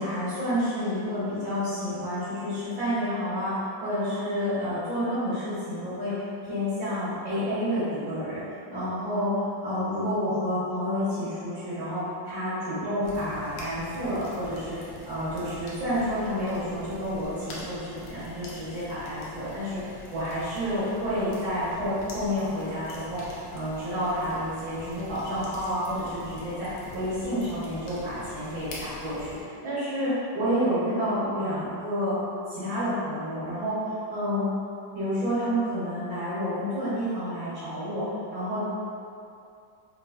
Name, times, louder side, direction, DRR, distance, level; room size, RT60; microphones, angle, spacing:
voice 1, 0.0-8.4 8.7-9.3 9.6-14.8 15.0-19.8 20.1-32.2 32.5-33.8 34.1-34.5 35.0-38.1 38.3-38.6, equal, 80° right, -15 dB, 1.8 m, -29 dB
sound 1, 13.0-29.4, left 2 dB, 75° left, 1.3 m, -44 dB
4.6 x 2.4 x 2.3 m, 2.5 s
omnidirectional pair, 2.1 m